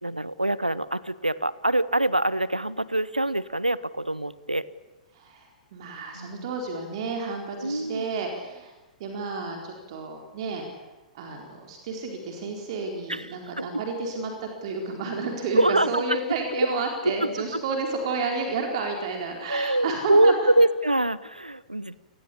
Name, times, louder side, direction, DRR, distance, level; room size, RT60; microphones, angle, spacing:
voice 1, 0.0-4.7 6.1-6.5 7.6-8.1 13.1-13.7 15.5-16.2 17.0-17.1 17.5-17.6 19.5-22.0, right 1 dB, 90° right, 19 dB, 1.0 m, -24 dB
voice 2, 5.1-8.7 9.0-10.6 11.1-20.3, right 3 dB, 50° right, 3 dB, 4.2 m, -31 dB
28.5 x 19.5 x 8.6 m, 1.1 s
figure-of-eight pair, 105°, 4 cm